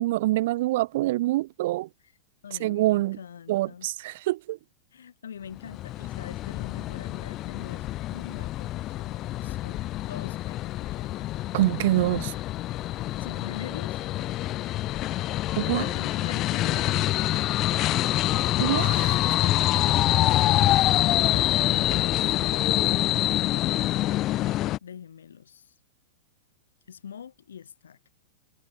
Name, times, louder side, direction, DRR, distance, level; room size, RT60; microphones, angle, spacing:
voice 1, 0.0-1.9 2.6-3.2 3.5-4.6 11.5-12.3 15.6-15.9 18.6-19.3, right 17 dB, 55° right, 1.4 m, -25 dB
voice 2, 2.4-3.9 4.9-11.3 13.2-14.0 15.7-17.2 20.1-23.8 24.8-25.8 26.9-28.0, left 8 dB, 70° left, 3.7 m, -44 dB
sound 1, 5.6-24.8, left 15 dB, 35° left, 0.3 m, -26 dB
figure-of-eight pair, 100°, 0 cm